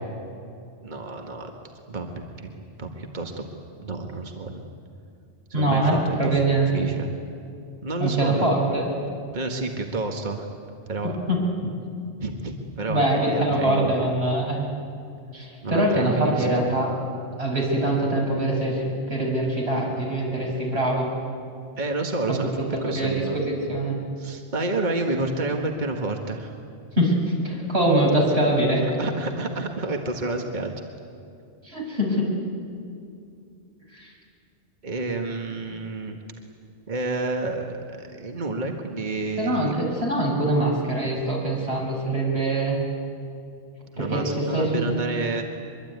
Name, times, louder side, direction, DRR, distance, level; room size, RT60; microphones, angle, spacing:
voice 1, 0.8-1.5 1.9-2.5 2.8-3.4 3.8-4.7 5.6-6.4 6.7-7.1 7.8-8.8 9.3-10.5 10.9-11.1 12.2-14.1 15.6-16.5 21.8-23.4 24.2-26.6 28.8-30.7 34.8-36.2 36.9-39.7 43.9-45.4, right 2 dB, 40° right, 3 dB, 1.9 m, -29 dB
voice 2, 5.5-6.9 8.0-8.9 11.0-11.7 12.9-14.7 15.3-16.9 17.4-21.1 22.3-24.0 26.9-28.8 31.6-32.3 33.9-34.1 39.4-42.8 44.0-44.9, right 1 dB, 60° right, -2 dB, 6.2 m, -23 dB
23.5 x 23.0 x 9.6 m, 2.5 s
omnidirectional pair, 1.2 m